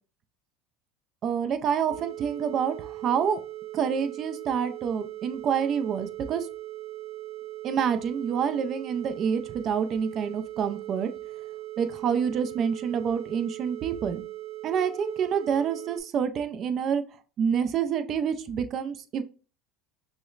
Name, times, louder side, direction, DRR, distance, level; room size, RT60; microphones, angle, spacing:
voice 1, 1.2-3.4 3.7-6.5 7.6-11.1 11.8-14.2 14.6-17.0 17.4-19.2, right 7 dB, 40° right, 9 dB, 0.4 m, -27 dB
sound 1, 1.9-16.0, right 15 dB, 65° right, 1.1 m, -39 dB
6.1 x 2.1 x 2.4 m, 0.35 s
supercardioid pair, 120°, 0 cm